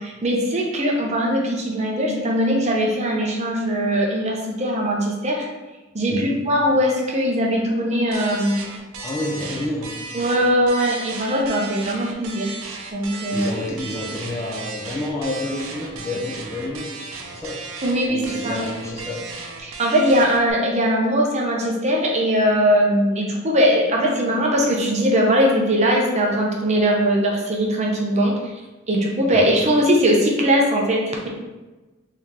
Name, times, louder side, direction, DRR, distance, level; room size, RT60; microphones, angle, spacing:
voice 1, 0.0-5.4 5.9-8.7 10.1-12.6 12.9-13.5 17.8-18.6 19.6-28.3 28.9-31.3, equal, 35° right, -1 dB, 0.6 m, -20 dB
voice 2, 6.1-6.4 9.0-10.0 13.3-17.0 17.3-17.6 18.1-19.3 29.3-29.5, left 1 dB, 15° left, -3 dB, 0.5 m, -29 dB
sound 1, 8.1-20.5, right 4 dB, 85° right, 0.5 m, -35 dB
3.6 x 2.8 x 3.2 m, 1.2 s
head